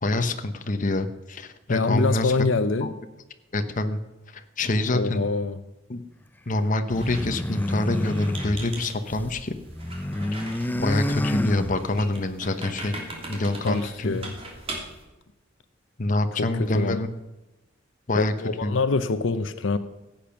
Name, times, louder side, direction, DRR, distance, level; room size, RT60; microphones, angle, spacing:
voice 1, 0.0-2.3 2.8-2.9 3.5-4.0 4.6-5.2 5.9-6.0 6.5-9.6 10.8-13.0 13.3-14.2 16.0-17.1 18.1-18.3 18.6-18.8, left 2 dB, 45° left, 8 dB, 1.0 m, -26 dB
voice 2, 1.7-2.9 4.9-5.6 13.6-14.4 16.4-17.0 18.1-19.8, left 3 dB, 80° left, 11 dB, 0.7 m, -25 dB
sound 1, 6.9-9.3 9.6-12.2, left 1 dB, 10° left, 0.5 m, -29 dB
Squeak, 6.9-15.0, right 1 dB, 30° right, 2.9 m, -40 dB
15.5 x 8.8 x 5.9 m, 1.1 s
head